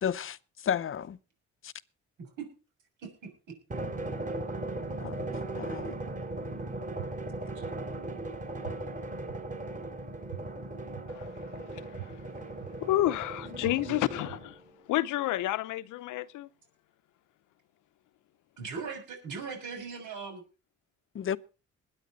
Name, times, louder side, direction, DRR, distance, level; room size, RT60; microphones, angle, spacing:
voice 1, 0.0-1.2 1.6-1.7 5.0-5.3 5.6-6.0 21.1-21.4, left 8 dB, 45° left, 0.7 m, -32 dB
Drum, 3.7-14.7, right 2 dB, 25° right, 3.1 m, -38 dB
sound 1, 7.0-7.1 7.6-7.7 8.6-8.7 9.3-9.4 10.3-10.4 10.9-11.0 12.0-12.1 12.6-12.7 13.6-13.7 14.3-14.4, right 15 dB, 60° right, 1.7 m, -40 dB
voice 2, 11.1-12.6 12.8-14.6 14.9-16.5, left 15 dB, 85° left, 0.8 m, -31 dB
voice 3, 18.6-20.4, right 5 dB, 80° right, 6.8 m, -39 dB
20.5 x 9.7 x 4.0 m
cardioid pair, 90°, 30 cm